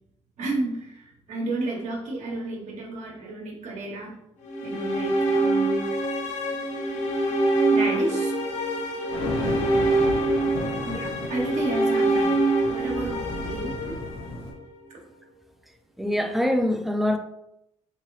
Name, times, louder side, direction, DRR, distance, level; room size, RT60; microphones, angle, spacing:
voice 1, 0.4-4.2 4.6-5.9 7.7-8.3 10.8-13.9, right 2 dB, 75° right, 1.0 m, -32 dB
sound 1, 4.4-14.6, right 2 dB, 85° left, 0.6 m, -25 dB
sound 2, 9.1-14.5, left 1 dB, 55° left, 1.1 m, -35 dB
voice 2, 16.0-17.2, left 1 dB, ahead, 0.3 m, -24 dB
3.5 x 2.9 x 3.1 m
cardioid pair, 130°, 12 cm